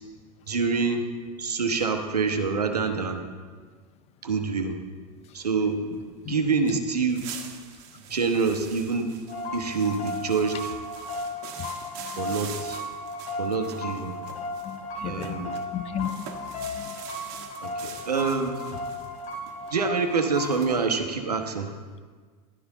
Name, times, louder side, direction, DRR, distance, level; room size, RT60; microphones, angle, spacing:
voice 1, 0.5-1.0 1.4-3.3 4.2-4.8 5.3-7.2 8.1-9.2 9.5-10.8 12.2-12.8 13.4-14.2 15.0-15.6 17.6-18.9 19.7-21.7, right 4 dB, 90° right, 5 dB, 1.0 m, -26 dB
sound 1, 6.7-6.8 7.1-15.7 16.0-20.8, right 8 dB, 55° right, 1.3 m, -44 dB
sound 2, 9.3-20.7, left 2 dB, 55° left, 3.0 m, -35 dB
voice 2, 14.6-16.3 16.7-16.9, left 9 dB, 35° left, 14 dB, 0.5 m, -34 dB
12.0 x 9.8 x 3.9 m, 1.5 s
hypercardioid pair, 90°, 20 cm